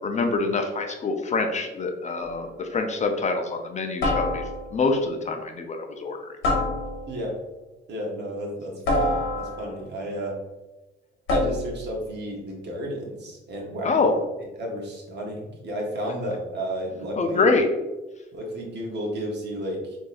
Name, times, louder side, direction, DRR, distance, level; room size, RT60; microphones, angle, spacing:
voice 1, 0.0-6.4 13.8-14.1 17.2-17.7, left 3 dB, 35° left, 4 dB, 0.5 m, -25 dB
sound 1, 2.2-2.5 4.0-4.8 6.4-7.3 8.9-9.8 11.3-11.9, left 1 dB, 90° left, 1.1 m, -26 dB
voice 2, 7.1-7.4 7.9-10.4 11.3-14.0 14.6-17.5 18.3-20.0, equal, 60° right, -1 dB, 1.0 m, -32 dB
3.8 x 2.6 x 2.5 m, 1.1 s
cardioid pair, 90°, 20 cm